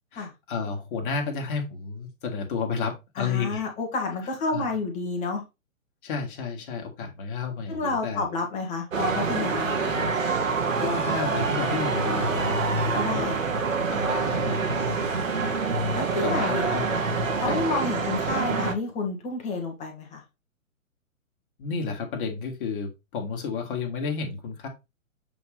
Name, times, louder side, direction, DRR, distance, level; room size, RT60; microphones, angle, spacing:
voice 1, 0.1-3.7 4.5-4.7 6.0-8.2 10.8-12.6 13.1-13.3 13.9-15.6 16.2-17.0 17.5-17.6 21.6-24.7, left 5 dB, 40° left, 2 dB, 2.0 m, -31 dB
voice 2, 3.1-5.4 7.7-10.0 12.9-13.4 15.9-16.7 17.4-20.2, left 3 dB, 15° left, 3 dB, 1.6 m, -30 dB
sound 1, 8.9-18.7, right 4 dB, 70° right, 1.6 m, -26 dB
7.8 x 3.9 x 3.4 m, 0.24 s
figure-of-eight pair, 125°, 41 cm